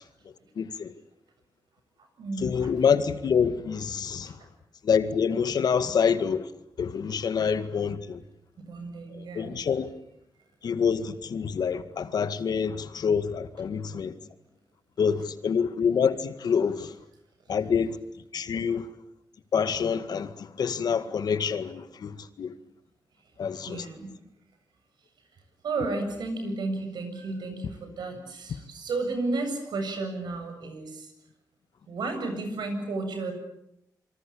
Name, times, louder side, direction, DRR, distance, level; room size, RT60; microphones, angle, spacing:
voice 1, 0.6-0.9 2.4-4.4 4.8-6.5 6.8-8.2 9.1-9.9 10.6-14.1 15.0-16.9 17.5-18.0 18.3-18.9 19.5-22.5 23.4-23.9, left 6 dB, 70° left, 2.0 m, -26 dB
voice 2, 2.0-2.7 8.6-9.6 23.7-24.2 25.6-31.1 31.9-33.3, right 3 dB, 85° right, 7.6 m, -33 dB
27.5 x 25.0 x 8.8 m
wide cardioid pair, 125°, 7 cm